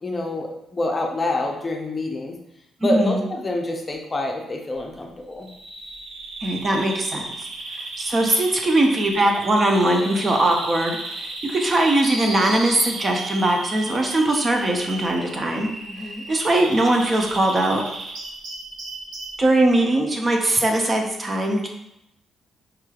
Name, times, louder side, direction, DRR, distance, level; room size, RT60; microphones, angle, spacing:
voice 1, 0.0-2.3 2.8-5.5 15.9-16.3, left 2 dB, 25° left, 2 dB, 0.6 m, -27 dB
voice 2, 2.8-3.2 6.4-7.2 8.0-15.7 16.3-17.8 19.4-21.7, right 1 dB, 30° right, 2 dB, 0.6 m, -20 dB
Bird vocalization bird call bird song, 5.4-19.4, right 2 dB, 70° right, 0.8 m, -34 dB
4.7 x 3.0 x 2.3 m, 0.82 s
cardioid pair, 90°, 0 cm